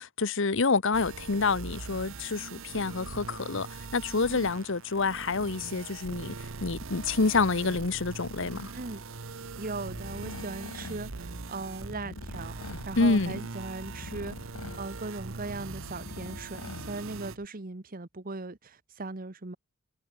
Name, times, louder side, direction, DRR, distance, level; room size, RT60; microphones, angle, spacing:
voice 1, 0.0-3.7 3.9-6.3 6.6-8.7 13.0-13.3, left 4 dB, 60° left, 1.0 m, -27 dB
sound 1, 0.9-17.4, right 4 dB, 65° right, 1.0 m, -42 dB
voice 2, 9.6-19.6, right 3 dB, 40° right, 1.1 m, -39 dB
sound 2, 9.8-17.5, left 2 dB, 80° left, 1.6 m, -44 dB
head